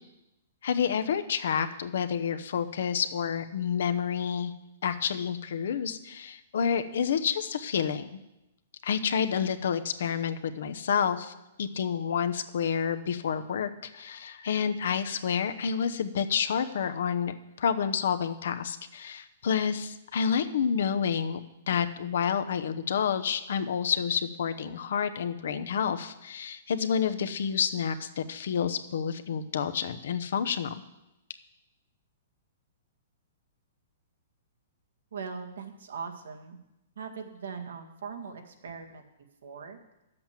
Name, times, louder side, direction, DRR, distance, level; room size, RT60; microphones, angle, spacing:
voice 1, 0.6-4.5 4.8-8.2 8.8-11.3 11.6-21.4 21.7-30.7, left 7 dB, 70° left, 10 dB, 0.9 m, -29 dB
voice 2, 35.1-36.6 37.0-39.0 39.4-39.8, right 5 dB, 85° right, 4 dB, 1.8 m, -40 dB
10.5 x 7.8 x 7.5 m, 0.94 s
hypercardioid pair, 165°, 0 cm